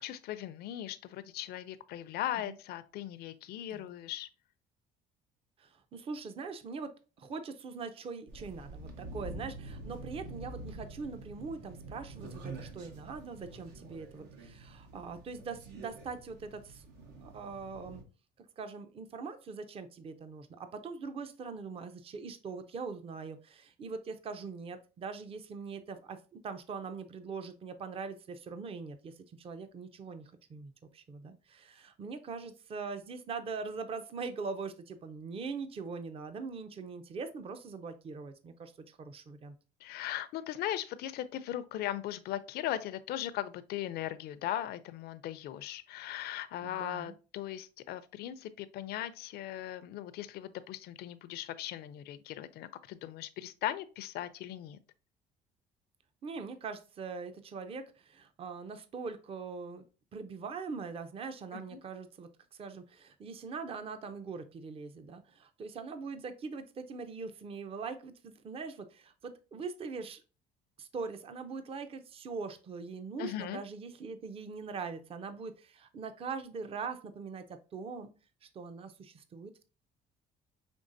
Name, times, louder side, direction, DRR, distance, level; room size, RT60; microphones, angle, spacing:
voice 1, 0.0-4.3 39.8-54.8 61.5-61.8 73.2-73.6, left 12 dB, 70° left, 0.4 m, -38 dB
voice 2, 5.6-16.8 17.2-18.0 18.6-39.5 46.6-47.1 56.2-59.8 60.1-70.2 70.8-78.1 78.4-79.7, right 4 dB, 35° right, 0.5 m, -42 dB
sound 1, 8.3-18.0, right 2 dB, 85° right, 1.0 m, -47 dB
5.2 x 3.2 x 2.6 m
cardioid pair, 110°, 17 cm